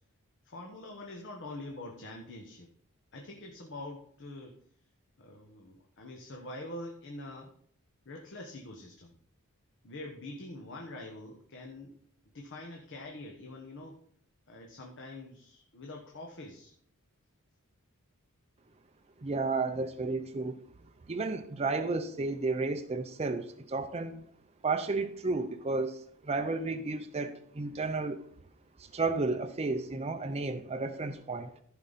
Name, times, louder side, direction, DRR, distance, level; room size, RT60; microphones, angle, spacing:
voice 1, 0.4-2.7 3.1-4.6 5.2-7.5 8.0-9.1 9.8-12.0 12.3-14.0 14.5-16.7, left 2 dB, 55° left, 1 dB, 1.2 m, -45 dB
voice 2, 19.2-20.6 21.1-24.2 24.6-28.2 28.8-31.5, right 3 dB, 30° right, 6 dB, 0.5 m, -32 dB
14.5 x 5.4 x 4.1 m, 0.64 s
head